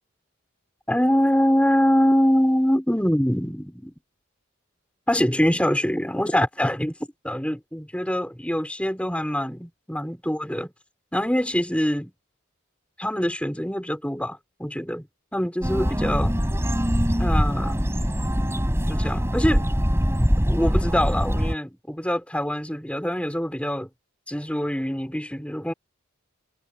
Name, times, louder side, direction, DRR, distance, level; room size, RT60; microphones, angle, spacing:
voice 1, 0.9-3.9 5.1-6.9 7.2-10.7 11.1-12.1 13.0-15.1 15.3-16.4 17.2-17.8 18.9-19.6 20.5-23.9 24.3-25.7, equal, 5° left, 4.9 m, -24 dB
sound 1, 15.6-21.6, equal, 10° right, 7.3 m, -23 dB
head